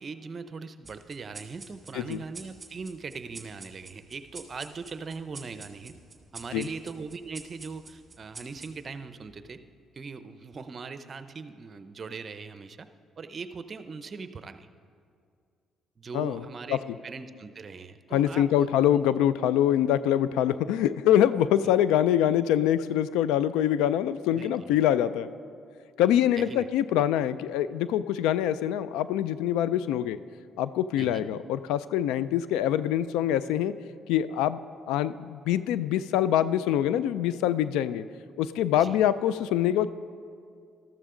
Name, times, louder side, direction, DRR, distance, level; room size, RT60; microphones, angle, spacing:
voice 1, 0.0-5.9 6.3-9.6 9.9-12.9 13.2-14.7 16.0-16.8 17.0-19.1 24.3-24.8 26.3-26.7 31.0-31.3 38.8-39.0, right 4 dB, 40° right, 11 dB, 0.6 m, -40 dB
sound 1, 0.9-9.7, right 3 dB, 25° right, 1.7 m, -49 dB
voice 2, 18.1-25.3 26.0-30.2 30.6-33.7 34.1-34.6 34.9-38.0 38.4-39.9, left 11 dB, 90° left, 16 dB, 0.3 m, -24 dB
13.5 x 13.0 x 3.8 m, 2.3 s
supercardioid pair, 75°, 0 cm